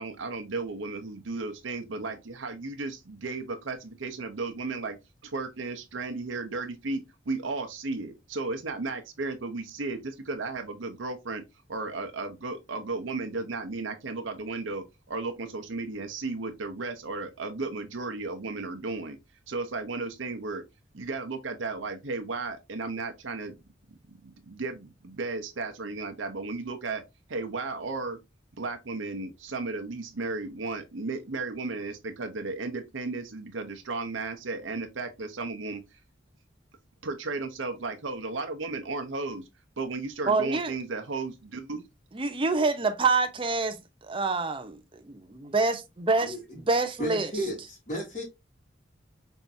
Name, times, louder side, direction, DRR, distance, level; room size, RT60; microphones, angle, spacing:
voice 1, 0.0-11.4 11.7-19.2 19.5-20.6 20.9-23.6 24.2-27.0 27.3-28.2 28.6-35.8 37.0-39.4 39.8-41.8, right 3 dB, 90° right, 0.8 m, -34 dB
voice 2, 40.3-40.7 42.1-43.8 44.0-44.8 45.1-45.8 46.1-46.3 46.7-47.3, right 3 dB, 25° right, 0.7 m, -26 dB
voice 3, 47.0-48.2, equal, 35° left, 1.7 m, -33 dB
5.6 x 3.5 x 2.7 m
head